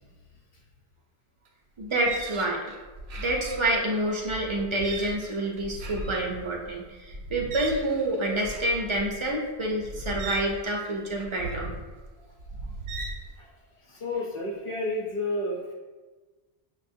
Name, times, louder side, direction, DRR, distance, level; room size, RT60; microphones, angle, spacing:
sound 1, 1.5-1.6 1.8-13.3, right 3 dB, 75° right, 0.8 m, -39 dB
voice 1, 1.8-2.7 3.1-11.7, right 1 dB, 45° right, -1 dB, 0.4 m, -28 dB
voice 2, 13.8-15.7, left 1 dB, 35° left, -2 dB, 0.7 m, -31 dB
6.1 x 2.3 x 2.6 m, 1.3 s
omnidirectional pair, 1.1 m